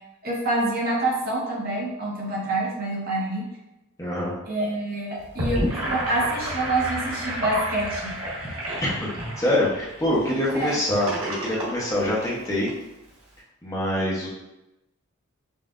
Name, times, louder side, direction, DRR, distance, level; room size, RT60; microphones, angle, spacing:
voice 1, 0.2-3.4 4.4-5.6 5.9-8.1 10.5-10.8, right 2 dB, 45° right, -4 dB, 1.1 m, -26 dB
voice 2, 4.0-4.3 8.8-9.1 9.4-12.7 13.6-14.3, left 1 dB, 15° left, -6 dB, 0.8 m, -25 dB
Gurgling / Sink (filling or washing), 5.2-12.7, right 1 dB, 90° right, 1.2 m, -31 dB
5.4 x 2.5 x 2.4 m, 0.94 s
head